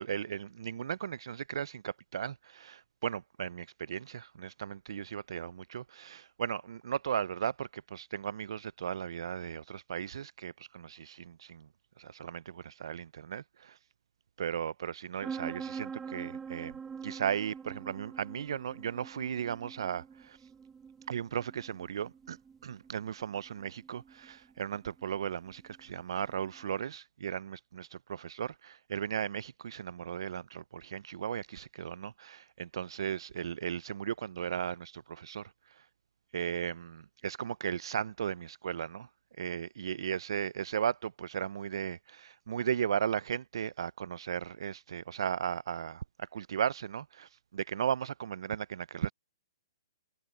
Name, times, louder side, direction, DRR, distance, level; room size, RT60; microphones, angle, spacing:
voice 1, 0.0-11.7 12.0-13.8 14.4-20.4 21.1-35.8 36.3-39.1 39.4-49.1, right 8 dB, 70° right, 0.6 m, -36 dB
sound 1, 15.2-26.7, right 6 dB, 10° right, 0.8 m, -45 dB
hypercardioid pair, 140°, 3 cm